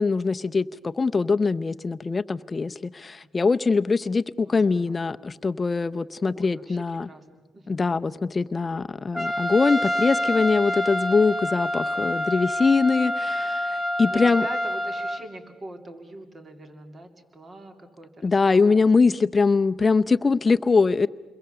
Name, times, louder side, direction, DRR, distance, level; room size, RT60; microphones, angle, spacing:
voice 1, 0.0-7.1 7.7-14.4 18.2-21.1, left 4 dB, 30° left, 11 dB, 0.7 m, -22 dB
voice 2, 4.4-5.1 6.3-7.9 14.1-18.9, right 2 dB, 35° right, 6 dB, 2.6 m, -42 dB
Trumpet, 9.1-15.2, left 1 dB, 5° right, 1.5 m, -27 dB
28.5 x 22.0 x 6.9 m, 1.3 s
cardioid pair, 90°, 0 cm